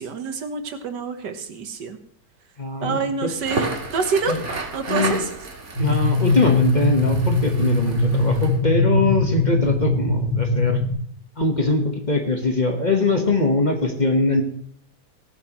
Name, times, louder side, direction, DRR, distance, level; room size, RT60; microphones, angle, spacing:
voice 1, 0.0-2.0 2.8-4.4 4.7-5.3, right 5 dB, 80° right, 7 dB, 1.8 m, -27 dB
voice 2, 2.6-3.3 4.3-4.4 4.9-5.2 5.8-10.8 11.4-14.4, left 3 dB, 30° left, 3 dB, 1.3 m, -22 dB
Crackle, 3.3-8.6, right 3 dB, 45° right, 1.9 m, -32 dB
sound 1, 5.7-10.9, left 2 dB, 75° left, 4.5 m, -21 dB
17.5 x 12.0 x 3.1 m, 0.64 s
omnidirectional pair, 1.8 m